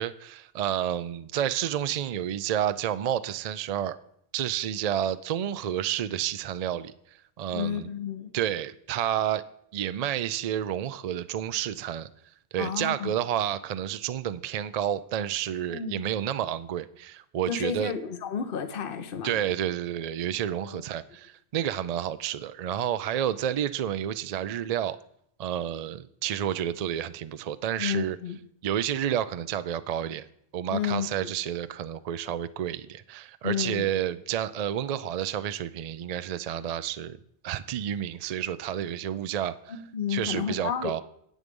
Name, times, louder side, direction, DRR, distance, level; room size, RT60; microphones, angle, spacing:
voice 1, 0.0-4.0 4.3-6.9 7.4-7.9 8.3-9.4 9.7-12.1 12.5-17.9 19.2-25.0 25.4-28.2 28.6-30.3 30.5-37.2 37.4-39.8 40.1-41.0, right 10 dB, 65° right, 14 dB, 0.4 m, -30 dB
voice 2, 7.5-8.3 12.6-13.1 15.7-16.0 17.5-19.4 20.7-20.8 27.8-28.4 30.7-31.3 33.4-33.9 39.7-41.0, left 8 dB, 55° left, 9 dB, 1.0 m, -31 dB
9.8 x 8.5 x 5.3 m, 0.71 s
omnidirectional pair, 1.2 m